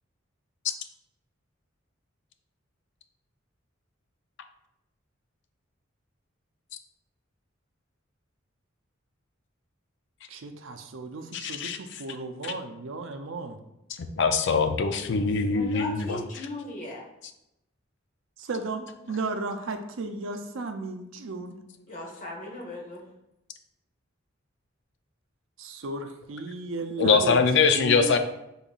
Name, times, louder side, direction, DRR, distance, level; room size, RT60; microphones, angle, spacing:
voice 1, 10.3-13.6 18.4-21.5 25.6-27.4 27.7-28.2, right 3 dB, 70° right, 6 dB, 0.5 m, -34 dB
voice 2, 11.3-11.8 12.4-12.5 14.2-16.2 27.0-28.2, left 5 dB, 60° left, 7 dB, 0.5 m, -23 dB
voice 3, 15.5-17.0 21.9-23.0, left 1 dB, 40° left, -2 dB, 1.2 m, -38 dB
5.3 x 3.9 x 2.4 m, 0.86 s
head